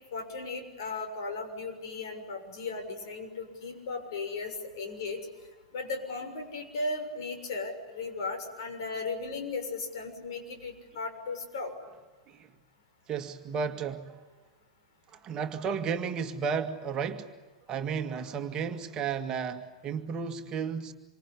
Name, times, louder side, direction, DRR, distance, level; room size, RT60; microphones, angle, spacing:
voice 1, 0.1-5.2 5.7-11.7, left 3 dB, 55° left, 6.7 m, -36 dB
voice 2, 13.1-14.2 15.1-17.3 17.7-20.9, right 6 dB, 30° right, 2.0 m, -33 dB
27.5 x 25.5 x 8.4 m
figure-of-eight pair, 90°, 3 cm